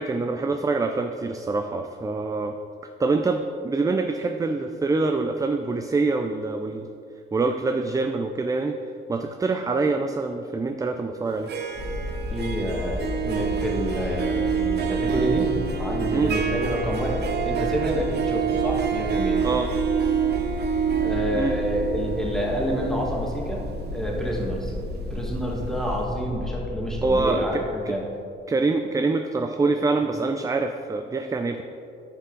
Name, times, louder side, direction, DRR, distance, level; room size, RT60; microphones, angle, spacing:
voice 1, 0.0-2.5 3.0-6.9 7.3-8.8 9.1-11.5 16.1-16.4 19.4-19.7 21.4-21.6 27.0-27.9 28.5-31.6, right 3 dB, 15° right, 6 dB, 0.4 m, -25 dB
Harp, 11.3-25.2, right 8 dB, 55° right, 0.6 m, -27 dB
sound 1, 11.7-27.2, left 1 dB, 50° left, 1.3 m, -32 dB
voice 2, 12.3-15.5 15.8-19.4 21.0-23.7 23.9-24.7 25.1-28.0, equal, ahead, -2 dB, 1.7 m, -28 dB
10.0 x 5.4 x 3.8 m, 2.6 s
cardioid pair, 90°, 20 cm